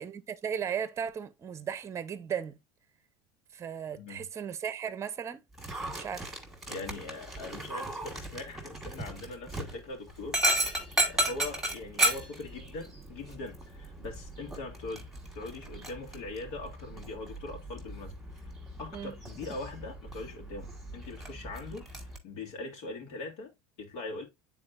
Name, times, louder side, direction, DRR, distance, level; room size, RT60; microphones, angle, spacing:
voice 1, 0.0-2.6 3.5-5.4 6.0-6.4 18.9-19.2, right 8 dB, 20° right, 0.8 m, -36 dB
voice 2, 3.9-4.3 6.7-10.8 11.1-18.1 18.8-23.5 23.8-24.2, left 3 dB, 75° left, 2.9 m, -41 dB
Dog, 5.5-22.2, right 2 dB, 5° right, 1.8 m, -35 dB
8.9 x 4.2 x 2.6 m
cardioid pair, 150°, 14 cm